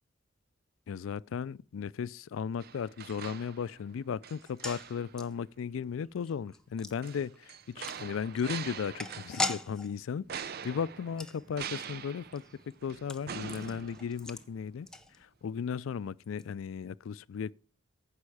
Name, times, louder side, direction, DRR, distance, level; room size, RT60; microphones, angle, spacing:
voice 1, 0.9-12.4 12.8-14.9 15.2-17.5, left 6 dB, 85° left, 0.4 m, -36 dB
sound 1, 2.6-3.9 4.2-5.2 7.0-9.7 10.3-14.6 15.0-15.1, right 7 dB, 50° right, 0.5 m, -44 dB
sound 2, 4.4-15.6 15.8-15.9 16.2-16.4, left 2 dB, 5° left, 0.7 m, -42 dB
15.0 x 5.5 x 4.8 m
head